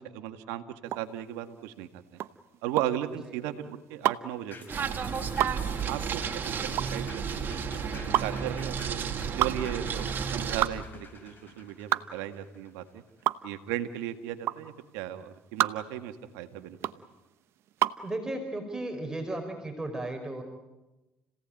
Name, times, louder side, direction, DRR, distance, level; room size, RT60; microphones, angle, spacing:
voice 1, 0.0-2.0 2.6-4.9 5.2-5.4 5.8-7.0 7.3-9.0 9.4-13.0 13.4-16.8, right 12 dB, 80° right, 7 dB, 1.9 m, -36 dB
sound 1, 0.8-18.1, right 13 dB, 65° right, 0.9 m, -31 dB
sound 2, 4.5-13.2 13.6-13.7, left 4 dB, 45° left, 5.8 m, -50 dB
sound 3, 4.7-10.7, right 6 dB, 45° right, 2.6 m, -32 dB
voice 2, 18.0-20.4, right 1 dB, 15° right, 3 dB, 5.0 m, -35 dB
30.0 x 17.0 x 9.1 m, 1.1 s
hypercardioid pair, 65°, 5 cm